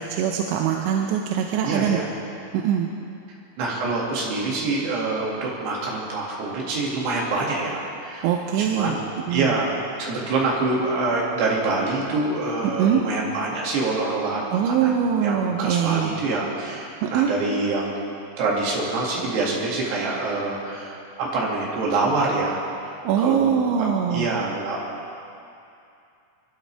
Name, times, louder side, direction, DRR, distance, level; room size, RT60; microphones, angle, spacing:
voice 1, 0.1-2.1 2.5-2.9 8.2-9.0 9.3-9.5 12.8-13.0 14.5-16.1 17.0-17.3 23.0-24.3, right 8 dB, 80° right, 2 dB, 2.8 m, -22 dB
voice 2, 1.6-2.0 3.6-8.3 8.6-9.0 9.3-15.0 15.2-18.0 18.4-22.6 23.2-23.6 24.1-24.9, right 3 dB, 60° right, -4 dB, 4.1 m, -25 dB
25.0 x 12.0 x 3.4 m, 2.6 s
omnidirectional pair, 5.7 m